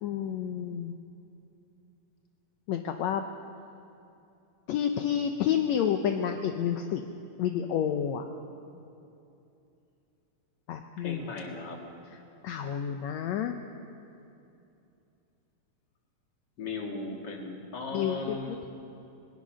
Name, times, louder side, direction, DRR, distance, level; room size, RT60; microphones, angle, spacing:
voice 1, 0.0-0.9 2.7-3.2 4.7-7.0 7.4-8.2 10.7-11.2 12.4-13.5 17.9-18.7, left 9 dB, 75° left, 5 dB, 1.7 m, -29 dB
voice 2, 11.0-11.8 16.6-18.7, left 3 dB, 35° left, 1 dB, 2.4 m, -37 dB
21.0 x 20.0 x 6.3 m, 2.7 s
omnidirectional pair, 3.9 m